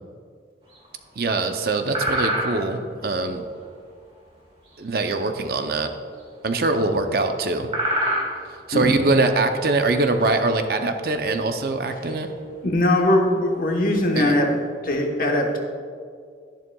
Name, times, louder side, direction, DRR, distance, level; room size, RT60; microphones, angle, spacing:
sound 1, 0.7-1.2 1.5-1.6 1.9-2.9 3.5-4.8 5.1-5.5 5.7-5.9 6.1-6.3 7.0-7.2 7.5-8.9 9.2-9.6 10.1-11.2 11.6-12.0 12.4-12.5 12.8-13.1 13.9-14.0 14.3-14.5, right 1 dB, 30° right, 1.8 m, -27 dB
voice 1, 1.2-3.5 4.8-5.9 6.4-7.7 8.7-12.3 14.2-14.3, right 3 dB, 55° right, 6 dB, 0.6 m, -23 dB
voice 2, 12.6-14.5 14.8-15.6, left 1 dB, 50° left, 2 dB, 1.1 m, -20 dB
11.5 x 11.0 x 2.3 m, 2.2 s
head